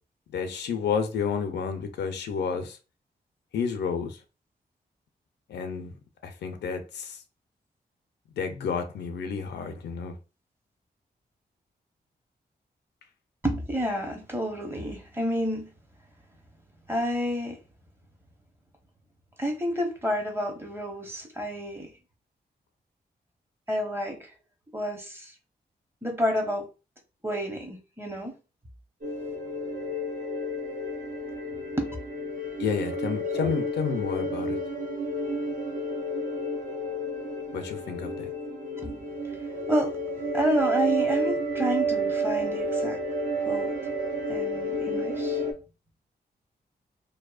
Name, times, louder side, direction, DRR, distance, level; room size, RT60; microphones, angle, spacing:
voice 1, 0.3-2.8 3.5-4.2 5.5-5.9 6.2-7.2 8.4-10.2 32.6-34.6 37.5-38.3, left 6 dB, 85° left, 0.5 m, -30 dB
voice 2, 13.4-15.7 16.9-17.6 19.4-21.9 23.7-24.3 24.7-25.3 26.0-26.7 27.2-28.3 31.8-32.0 33.3-33.5 38.8-40.0 40.3-43.0 43.5-43.9 44.3-45.4, equal, 15° right, 0.8 m, -30 dB
sound 1, 29.0-45.5, right 1 dB, 50° right, 0.7 m, -30 dB
2.7 x 2.1 x 2.3 m
cardioid pair, 75°, 17 cm